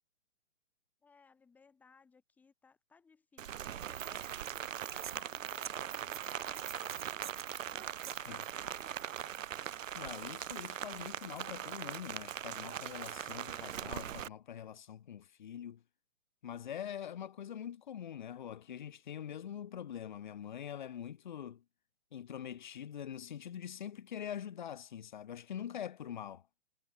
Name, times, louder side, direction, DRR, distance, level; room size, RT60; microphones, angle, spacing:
voice 1, 1.0-4.3 4.7-9.2, left 5 dB, 5° left, 2.1 m, -63 dB
Rain, 3.4-14.3, right 10 dB, 85° right, 0.7 m, -41 dB
sound 1, 3.8-9.4, right 10 dB, 40° right, 2.0 m, -49 dB
voice 2, 9.9-15.8 16.4-21.6 22.1-26.4, left 9 dB, 40° left, 1.0 m, -44 dB
hypercardioid pair, 170°, 38 cm